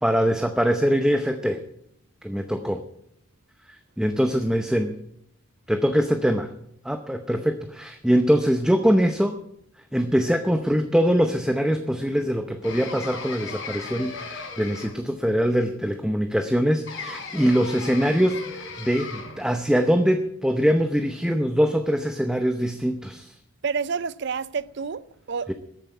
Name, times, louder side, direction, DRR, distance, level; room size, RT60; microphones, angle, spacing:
voice 1, 0.0-1.6 2.2-2.8 3.7-5.0 5.7-6.5 6.8-9.4 9.9-23.3 25.5-25.6, equal, 5° right, 0.7 m, -23 dB
sound 1, 12.6-15.2 16.9-19.5, left 4 dB, 60° left, 3.8 m, -37 dB
voice 2, 23.6-25.5, right 5 dB, 50° right, 0.5 m, -29 dB
13.5 x 8.1 x 9.3 m
head